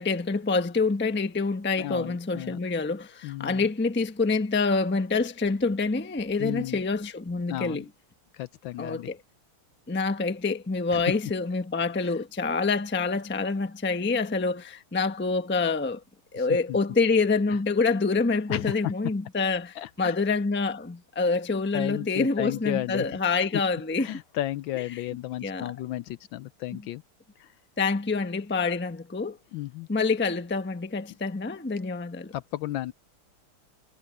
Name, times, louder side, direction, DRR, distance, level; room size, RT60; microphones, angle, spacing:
voice 1, 0.0-7.8 8.8-9.2 9.9-16.0 16.3-24.2 24.9-25.0 25.4-25.7 27.8-29.4 29.9-32.3, left 4 dB, 10° left, 0.5 m, -26 dB
voice 2, 1.8-2.6 3.2-3.6 6.4-6.8 7.5-7.9 8.3-9.1 10.9-11.0 12.0-12.2 16.4-16.8 18.5-18.7 19.8-20.2 21.7-23.1 24.0-27.0 27.4-27.5 29.5-29.9 32.3-32.9, left 14 dB, 75° left, 1.2 m, -33 dB
omnidirectional pair, 2.4 m